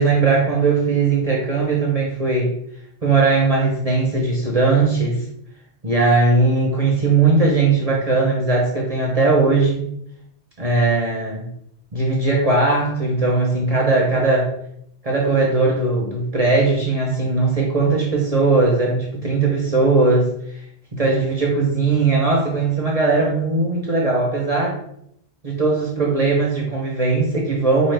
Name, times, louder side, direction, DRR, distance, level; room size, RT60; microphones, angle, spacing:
voice 1, 0.0-2.5 3.0-5.2 5.8-9.9 10.6-11.5 11.9-14.5 15.0-20.3 20.9-24.8 25.4-27.9, right 3 dB, 40° right, -3 dB, 0.8 m, -19 dB
4.8 x 2.3 x 3.3 m, 0.72 s
omnidirectional pair, 1.1 m